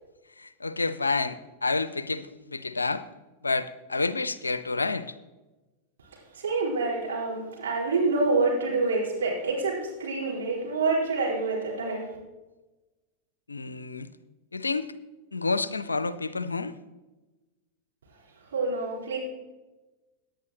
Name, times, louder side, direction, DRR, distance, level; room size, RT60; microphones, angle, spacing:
voice 1, 0.4-3.0 3.4-5.2 13.5-14.1 14.5-14.9 15.3-16.7, left 3 dB, 80° left, 15 dB, 0.5 m, -29 dB
voice 2, 6.3-12.1 18.5-19.2, right 3 dB, 65° right, -4 dB, 4.5 m, -27 dB
18.0 x 10.0 x 3.1 m, 1.1 s
figure-of-eight pair, 90°, 0 cm